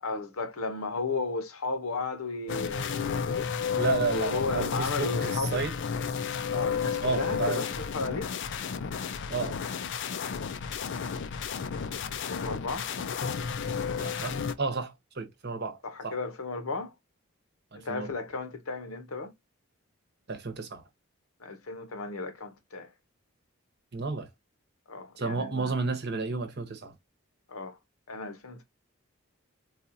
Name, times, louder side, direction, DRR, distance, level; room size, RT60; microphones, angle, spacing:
voice 1, 0.0-3.5 4.1-5.6 6.5-8.3 11.7-12.9 15.8-16.9 17.7-19.3 21.4-22.9 24.9-25.7 27.5-27.8 28.1-28.6, left 3 dB, 80° left, 0.9 m, -34 dB
sound 1, 2.5-14.5, left 6 dB, 55° left, 0.4 m, -32 dB
voice 2, 3.8-5.7 7.0-7.7 9.3-9.6 14.0-15.8 16.0-16.2 17.7-18.1 20.3-20.8 23.9-24.3 25.2-26.9, right 3 dB, 50° right, 0.9 m, -32 dB
4.0 x 2.4 x 2.6 m
head